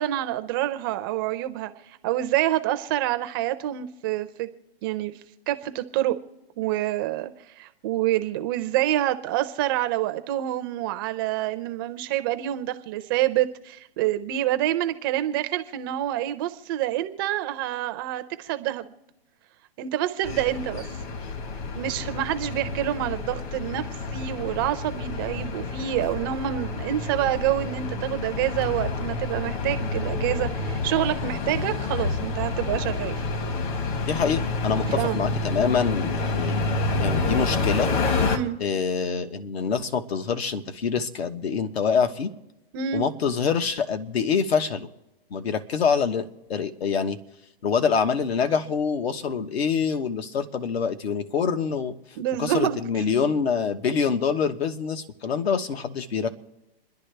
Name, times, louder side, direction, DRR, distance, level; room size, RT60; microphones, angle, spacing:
voice 1, 0.0-4.5 4.8-5.1 5.5-6.2 6.6-18.9 19.8-20.8 21.7-23.8 24.1-33.1 35.0-35.2 38.3-38.6 42.7-43.0 52.2-52.8, right 13 dB, 20° right, 10 dB, 0.4 m, -27 dB
sound 1, 20.2-38.4, left 3 dB, 50° left, 1.6 m, -28 dB
voice 2, 34.1-36.6 37.0-37.9 38.6-42.3 42.9-44.9 45.3-47.2 47.6-51.9 52.4-56.3, left 6 dB, 75° left, 8 dB, 1.3 m, -25 dB
27.5 x 10.5 x 3.4 m, 0.96 s
hypercardioid pair, 145°, 31 cm